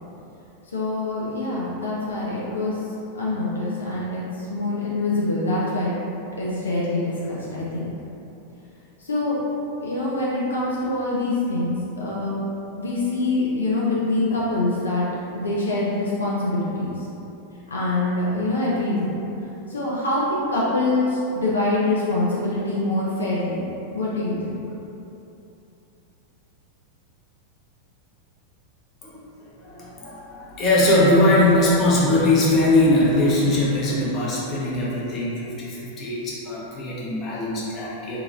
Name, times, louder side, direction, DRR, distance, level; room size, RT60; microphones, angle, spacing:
voice 1, 0.7-2.8 3.1-5.9 6.4-7.9 9.0-9.4 9.8-12.4 12.8-15.1 15.3-17.1 17.7-19.2 19.7-23.6 23.9-24.6, left 2 dB, 75° left, -7 dB, 0.5 m, -25 dB
voice 2, 29.6-38.2, left 1 dB, 30° left, -6 dB, 0.9 m, -21 dB
3.8 x 3.0 x 2.4 m, 2.9 s
figure-of-eight pair, 90°, 0 cm